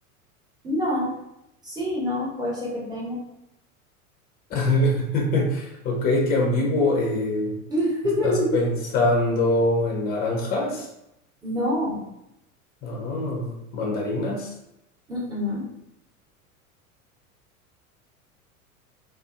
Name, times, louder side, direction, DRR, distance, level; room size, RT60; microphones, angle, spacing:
voice 1, 0.6-1.1 1.6-3.2 7.7-8.5 11.4-12.0 15.1-15.6, left 1 dB, 10° right, -6 dB, 0.9 m, -26 dB
voice 2, 4.5-7.5 8.2-10.9 12.8-14.5, left 2 dB, 20° left, 0 dB, 0.5 m, -24 dB
2.5 x 2.4 x 2.4 m, 0.82 s
figure-of-eight pair, 80°, 43 cm